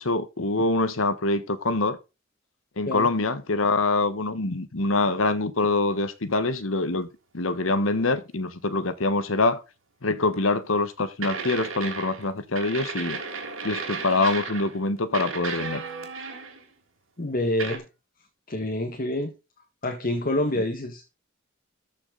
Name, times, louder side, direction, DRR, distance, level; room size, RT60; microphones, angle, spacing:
voice 1, 0.0-2.0 2.8-7.1 7.3-9.6 10.0-13.2 13.6-15.8 20.5-20.6, left 2 dB, 90° left, 1.2 m, -25 dB
sound 1, 10.3-10.5 11.2-12.3 12.6-14.8 15.1-16.7 17.6-17.8, right 4 dB, 85° right, 3.3 m, -34 dB
voice 2, 17.2-17.9 18.5-19.3 19.8-21.0, left 1 dB, 45° left, 1.6 m, -27 dB
13.5 x 6.0 x 4.0 m
head